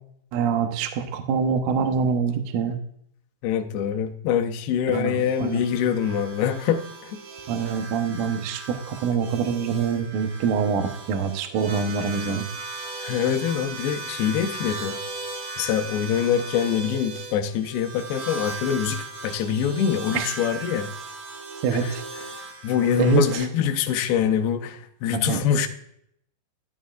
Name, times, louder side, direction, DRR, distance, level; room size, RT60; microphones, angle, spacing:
voice 1, 0.3-2.8 4.9-5.6 7.5-12.5 20.1-20.3 21.6-22.1 23.0-23.4 25.1-25.4, right 6 dB, 80° right, 6 dB, 1.8 m, -25 dB
voice 2, 3.4-7.2 13.0-15.0 15.6-20.9 21.7-22.0 22.4-25.7, left 8 dB, 80° left, 5 dB, 2.6 m, -24 dB
sound 1, 5.2-23.4, right 3 dB, 60° right, 2.9 m, -37 dB
13.0 x 8.7 x 2.4 m, 0.71 s
omnidirectional pair, 4.9 m